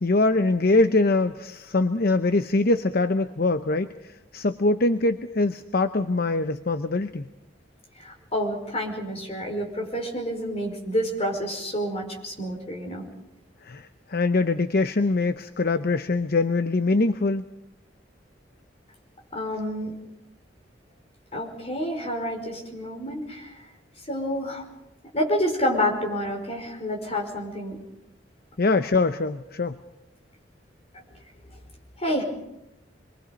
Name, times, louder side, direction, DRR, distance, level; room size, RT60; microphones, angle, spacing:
voice 1, 0.0-7.2 13.6-17.4 28.6-29.8, left 2 dB, 55° left, 10 dB, 0.8 m, -23 dB
voice 2, 8.0-13.1 19.3-20.0 21.3-23.6 24.0-24.6 25.1-27.8 30.9-31.0 32.0-32.2, equal, 35° left, 1 dB, 5.2 m, -29 dB
27.0 x 23.0 x 5.3 m, 0.88 s
head